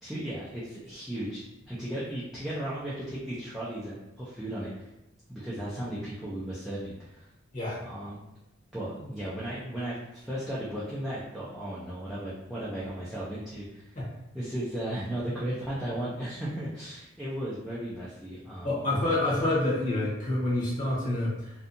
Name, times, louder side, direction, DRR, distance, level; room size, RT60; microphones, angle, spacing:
voice 1, 0.0-4.9 5.3-7.3 7.8-8.2 8.7-14.0 14.3-18.8, right 1 dB, ahead, -10 dB, 0.4 m, -35 dB
voice 2, 7.5-7.8 14.0-14.1 18.6-21.5, left 1 dB, 40° left, -6 dB, 0.9 m, -27 dB
2.6 x 2.3 x 2.5 m, 0.92 s
head